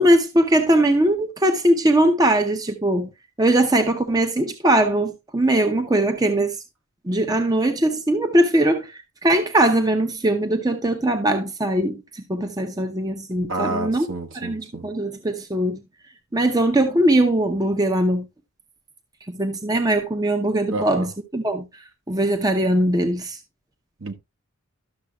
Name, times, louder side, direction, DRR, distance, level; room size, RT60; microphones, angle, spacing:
voice 1, 0.0-3.1 3.4-6.6 7.0-14.1 14.3-15.8 16.3-18.3 19.3-21.7 22.1-23.4, right 1 dB, 15° right, 0.8 m, -20 dB
voice 2, 13.5-14.8 20.7-21.1 24.0-24.1, right 2 dB, 60° right, 1.3 m, -29 dB
12.0 x 6.7 x 2.4 m
head